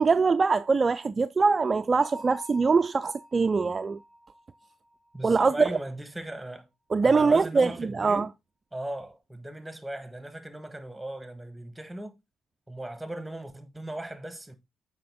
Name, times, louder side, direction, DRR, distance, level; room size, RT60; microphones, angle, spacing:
voice 1, 0.0-4.0 5.2-5.7 6.9-8.3, right 4 dB, 35° right, 0.3 m, -23 dB
Bell, 2.0-5.7, equal, 10° left, 3.5 m, -49 dB
voice 2, 5.1-6.7 7.0-8.3 8.7-12.2 12.7-14.6, right 1 dB, 10° right, 1.3 m, -38 dB
7.6 x 4.9 x 3.5 m
supercardioid pair, 60°, 0 cm